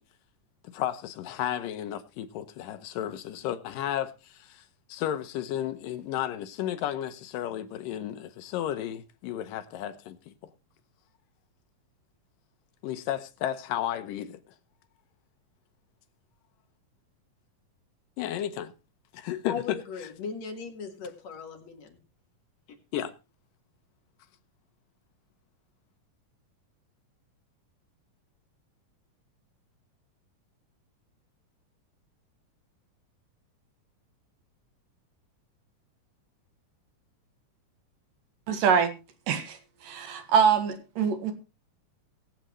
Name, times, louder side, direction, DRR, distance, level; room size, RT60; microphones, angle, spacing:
voice 1, 0.6-4.6 4.9-10.3 12.8-14.4 18.2-18.7 19.1-19.8 22.9-23.1, left 11 dB, 80° left, 2.6 m, -33 dB
voice 2, 19.5-22.0, left 6 dB, 55° left, 2.9 m, -38 dB
voice 3, 38.5-38.9 39.3-39.6 39.8-41.3, right 7 dB, 80° right, 3.3 m, -24 dB
22.0 x 8.1 x 3.1 m
omnidirectional pair, 3.8 m